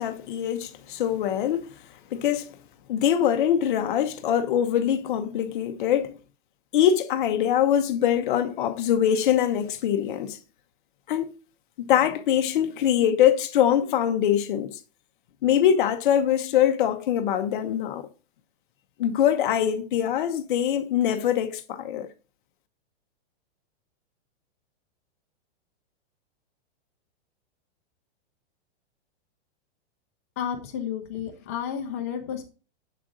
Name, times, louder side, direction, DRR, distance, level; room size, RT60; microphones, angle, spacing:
voice 1, 0.0-1.7 2.1-2.6 2.9-6.2 6.7-10.4 11.1-11.3 11.8-14.8 15.4-18.1 19.0-22.1, left 10 dB, 50° left, 0.7 m, -23 dB
voice 2, 30.4-32.4, left 8 dB, 15° left, 0.3 m, -31 dB
7.6 x 3.8 x 3.7 m
supercardioid pair, 165°, 33 cm